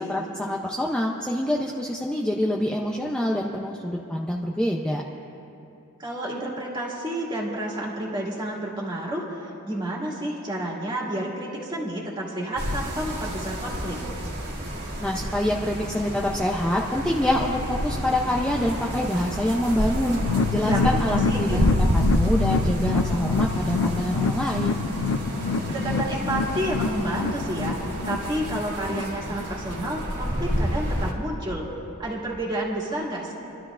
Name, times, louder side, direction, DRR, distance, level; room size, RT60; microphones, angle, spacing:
voice 1, 0.1-5.0 15.0-20.2 20.5-24.8, left 1 dB, 5° left, -2 dB, 0.5 m, -26 dB
voice 2, 6.0-14.0 20.4-21.6 25.7-27.8 28.0-31.7 32.0-33.3, right 1 dB, 20° right, -4 dB, 2.2 m, -30 dB
sound 1, 12.6-31.1, equal, 50° right, 1.9 m, -29 dB
sound 2, 20.2-29.4 29.8-29.9 30.3-30.4, left 4 dB, 65° left, 0.4 m, -27 dB
28.5 x 12.5 x 2.5 m, 2.9 s
head